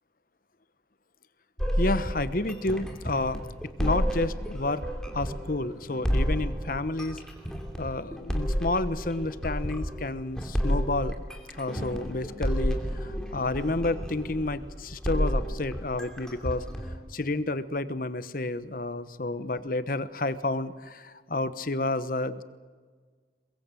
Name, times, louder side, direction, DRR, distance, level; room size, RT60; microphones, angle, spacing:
sound 1, 1.6-17.0, equal, 5° left, 2.8 m, -31 dB
voice 1, 1.8-3.4 3.8-4.8 5.1-7.2 7.8-11.2 11.5-16.7 17.1-22.4, left 2 dB, 50° left, 13 dB, 1.1 m, -30 dB
22.5 x 22.0 x 7.7 m, 1.5 s
head